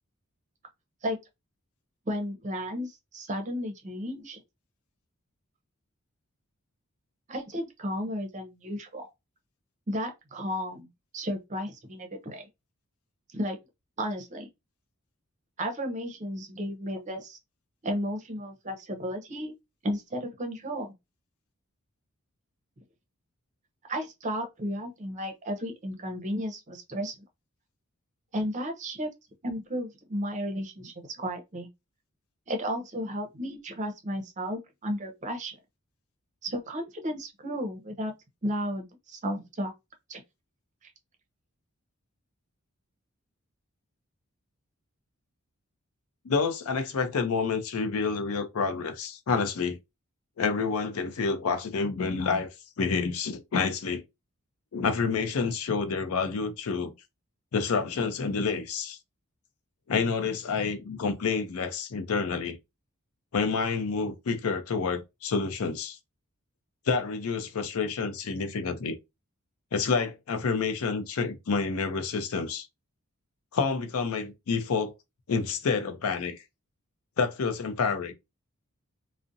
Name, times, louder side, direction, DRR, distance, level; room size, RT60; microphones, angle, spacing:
voice 1, 2.1-4.4 7.3-9.1 9.9-10.9 11.1-12.5 13.3-13.6 14.0-14.5 15.6-17.4 17.8-19.5 19.8-20.9 23.9-27.1 28.3-29.1 29.4-31.7 32.5-35.5 36.4-38.1 38.4-39.7 40.1-40.2, equal, 35° right, 0.6 m, -33 dB
voice 2, 46.2-49.8 50.4-52.5 52.8-54.0 54.7-56.9 57.5-59.0 59.9-62.6 63.3-66.0 66.9-69.0 69.7-72.7 73.5-74.9 75.3-76.4 77.2-78.1, left 5 dB, 85° left, 0.5 m, -28 dB
2.5 x 2.0 x 2.5 m
head